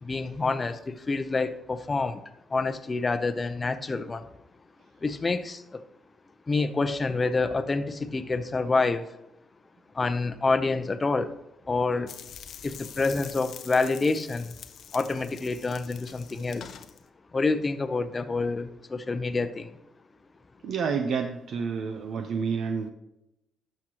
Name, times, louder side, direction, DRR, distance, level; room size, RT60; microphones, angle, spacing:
voice 1, 0.0-2.2 2.5-4.3 5.0-5.8 6.5-9.1 9.9-11.3 11.7-12.1 12.6-14.6 14.9-16.7 17.3-19.7, left 3 dB, 30° left, 10 dB, 0.6 m, -27 dB
sound 1, 12.1-17.0, left 8 dB, 65° left, 0.6 m, -45 dB
voice 2, 20.6-22.9, right 5 dB, 65° right, 6 dB, 0.6 m, -29 dB
12.0 x 6.3 x 2.9 m, 0.88 s
cardioid pair, 90°, 0 cm